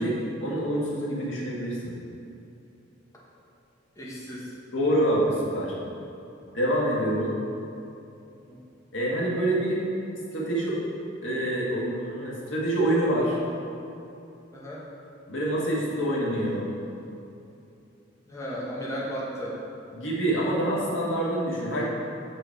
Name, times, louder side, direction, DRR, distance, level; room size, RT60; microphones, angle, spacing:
voice 1, 0.0-2.0 4.7-5.7 6.5-7.3 8.9-9.8 10.3-10.8 11.2-13.4 15.3-16.7 19.9-21.9, right 1 dB, 90° left, -4 dB, 1.5 m, -26 dB
voice 2, 4.0-4.5 8.5-8.6 14.5-14.8 18.3-19.6, equal, 15° left, -6 dB, 1.2 m, -35 dB
6.0 x 5.1 x 4.5 m, 2.7 s
head